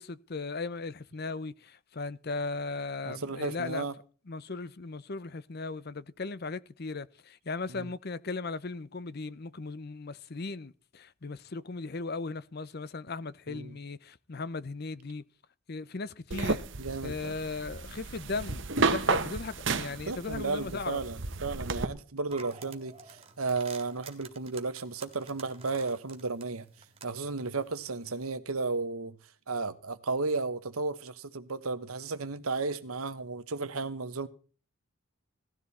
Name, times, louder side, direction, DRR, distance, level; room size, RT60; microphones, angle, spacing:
voice 1, 0.0-3.9 4.3-15.2 15.7-16.6 17.0-21.0, left 3 dB, 45° left, 0.6 m, -37 dB
voice 2, 3.0-3.9 7.7-7.9 13.5-13.7 16.8-17.3 20.0-26.7 27.0-29.2 29.5-34.3, right 3 dB, 80° right, 1.2 m, -34 dB
sound 1, 16.3-21.9, right 3 dB, 55° right, 1.1 m, -32 dB
sound 2, 22.3-28.3, right 5 dB, 25° right, 1.8 m, -51 dB
17.5 x 13.0 x 4.2 m
head